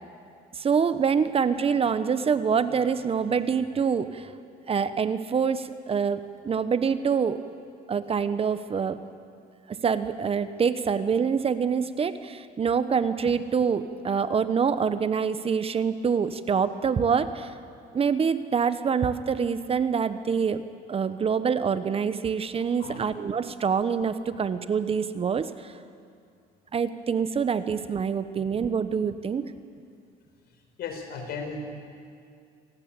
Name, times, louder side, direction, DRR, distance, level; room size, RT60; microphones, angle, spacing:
voice 1, 0.5-4.3 4.7-7.4 7.9-9.0 9.7-17.5 17.9-20.6 20.9-25.7 26.7-29.5, right 6 dB, 35° right, 12 dB, 1.0 m, -26 dB
voice 2, 30.8-31.7, left 4 dB, 70° left, 4 dB, 4.9 m, -35 dB
27.0 x 18.0 x 8.9 m, 2.3 s
cardioid pair, 110°, 17 cm